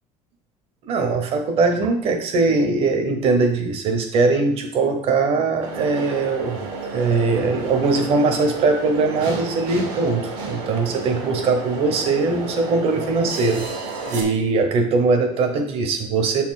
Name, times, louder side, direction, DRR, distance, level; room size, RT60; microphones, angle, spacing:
voice 1, 0.8-6.6 6.9-13.7 14.1-16.5, right 3 dB, 40° right, 6 dB, 1.0 m, -21 dB
sound 1, 5.6-14.2, right 3 dB, 75° right, 1.7 m, -32 dB
6.8 x 4.3 x 4.2 m, 0.64 s
cardioid pair, 175°, 15 cm